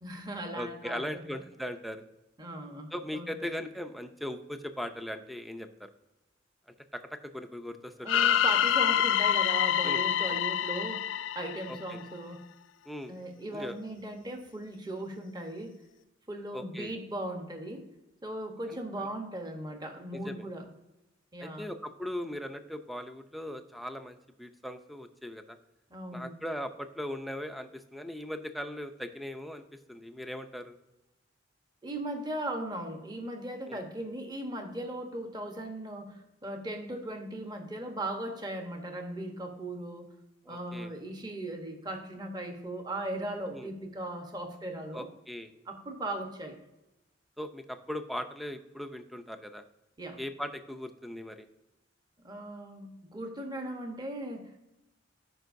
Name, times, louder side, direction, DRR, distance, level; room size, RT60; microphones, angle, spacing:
voice 1, 0.0-1.3 2.4-3.5 8.0-12.4 13.1-15.7 16.3-17.8 18.2-20.7 21.3-21.7 25.9-26.4 31.8-40.1 40.5-45.1 45.7-46.6 50.0-50.2 52.2-54.6, right 1 dB, 20° right, 4 dB, 1.0 m, -38 dB
voice 2, 0.5-2.0 2.9-5.9 6.9-8.4 9.8-10.0 10.3-10.4 11.7-12.0 12.9-13.1 13.5-13.8 16.5-17.0 19.0-19.1 20.1-20.5 21.4-25.6 26.1-29.6 29.9-30.8 33.7-33.8 40.5-40.9 43.5-43.7 44.9-45.5 47.4-49.6 50.2-51.5, left 1 dB, ahead, 8 dB, 0.5 m, -39 dB
sound 1, 8.1-12.1, left 10 dB, 65° left, 0.3 m, -26 dB
14.0 x 5.2 x 2.6 m, 0.95 s
head